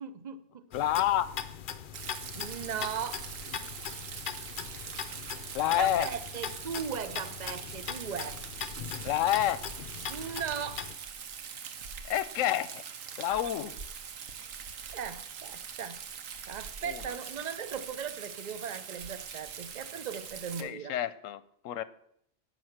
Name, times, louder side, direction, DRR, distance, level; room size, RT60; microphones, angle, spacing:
voice 1, 0.0-0.6 2.4-3.5 5.7-8.4 10.1-10.9 13.1-13.4 14.4-14.6 14.9-16.0 16.5-20.9, right 7 dB, 45° right, 12 dB, 0.7 m, -38 dB
voice 2, 0.7-1.3 5.5-6.1 9.0-9.6 12.1-12.8 13.2-13.8 16.8-17.0 20.6-21.8, left 12 dB, 80° left, 15 dB, 1.0 m, -28 dB
sound 1, 0.7-11.0, left 8 dB, 55° left, 0.6 m, -40 dB
Rain, 1.9-20.6, right 7 dB, 90° right, 1.3 m, -43 dB
10.5 x 6.6 x 6.4 m, 0.72 s
omnidirectional pair, 1.3 m